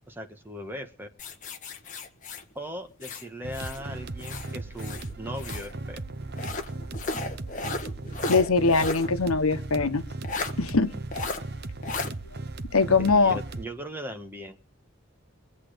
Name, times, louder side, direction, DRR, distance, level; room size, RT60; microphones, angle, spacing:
voice 1, 0.1-1.1 2.5-6.0 13.0-14.6, equal, 10° right, 6 dB, 1.3 m, -38 dB
sound 1, 1.2-3.8 4.2-5.7 6.3-9.1 9.4-9.5 10.2-10.5 11.1-11.4 11.8-12.1, left 3 dB, 35° left, 1.3 m, -35 dB
sound 2, 3.4-13.7, right 2 dB, 50° right, 0.8 m, -37 dB
voice 2, 8.3-10.0 10.6-10.9 12.7-13.4, left 4 dB, 90° left, 10 dB, 1.1 m, -22 dB
23.0 x 8.5 x 5.1 m, 0.37 s
head